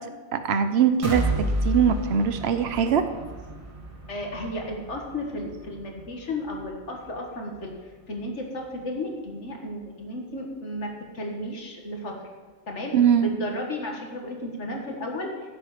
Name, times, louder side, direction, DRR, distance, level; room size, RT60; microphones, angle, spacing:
voice 1, 0.3-1.2 1.6-3.1 12.9-13.3, right 7 dB, 60° right, 10 dB, 1.0 m, -21 dB
sound 1, 1.0-8.8 9.2-9.3 9.7-9.8, right 1 dB, 25° right, 1.5 m, -33 dB
voice 2, 4.1-12.3 12.7-15.3, left 1 dB, 65° left, 1 dB, 2.0 m, -34 dB
15.0 x 7.7 x 5.1 m, 1.4 s
omnidirectional pair, 1.3 m